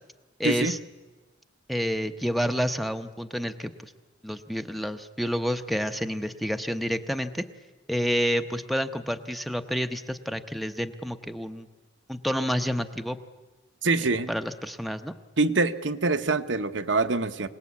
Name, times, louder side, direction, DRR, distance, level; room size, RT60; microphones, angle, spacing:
voice 1, 0.4-0.8 1.7-3.9 4.2-7.4 7.9-11.7 12.1-13.2 14.3-15.1, equal, ahead, 8 dB, 0.8 m, -29 dB
voice 2, 13.8-14.3 15.4-17.5, right 3 dB, 70° right, 9 dB, 1.0 m, -25 dB
27.0 x 18.5 x 8.4 m, 1.2 s
head